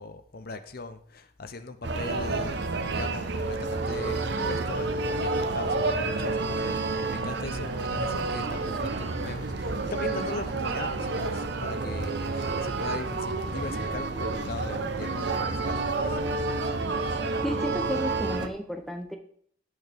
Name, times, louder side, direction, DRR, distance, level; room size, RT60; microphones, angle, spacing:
voice 1, 0.0-16.3, left 3 dB, 50° left, 9 dB, 0.7 m, -39 dB
sound 1, 1.8-18.5, right 3 dB, 55° right, 0.8 m, -29 dB
voice 2, 17.4-19.2, equal, ahead, 4 dB, 0.7 m, -33 dB
16.5 x 6.3 x 3.5 m, 0.62 s
head